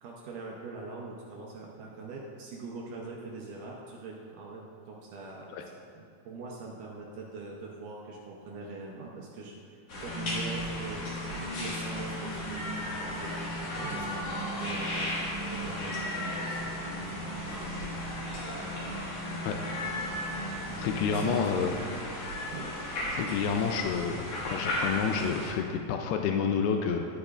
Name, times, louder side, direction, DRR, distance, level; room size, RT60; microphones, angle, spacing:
voice 1, 0.0-15.2 15.5-17.8 19.3-19.5 20.7-22.0 22.5-22.7, right 3 dB, 75° right, -2 dB, 2.0 m, -43 dB
sound 1, 9.9-25.5, left 1 dB, 50° left, 2.2 m, -36 dB
sound 2, 10.1-22.1, equal, 65° left, 2.0 m, -40 dB
voice 2, 20.8-21.7 23.1-27.1, left 6 dB, 85° left, 4 dB, 2.6 m, -29 dB
11.5 x 9.7 x 2.4 m, 2.3 s
omnidirectional pair, 4.6 m